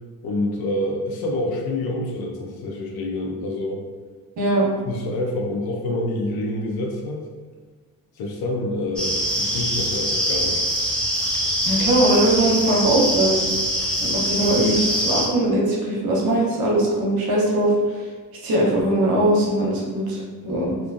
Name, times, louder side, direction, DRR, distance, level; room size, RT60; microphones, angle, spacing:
voice 1, 0.2-3.8 4.8-7.2 8.2-10.7, left 1 dB, 75° left, 0 dB, 0.6 m, -27 dB
voice 2, 4.4-4.7 11.6-13.5 14.0-18.0 18.4-20.7, right 1 dB, 70° right, -3 dB, 0.8 m, -20 dB
sound 1, 9.0-15.3, equal, ahead, 0.7 m, -23 dB
2.4 x 2.2 x 2.4 m, 1.4 s
cardioid pair, 65°, 38 cm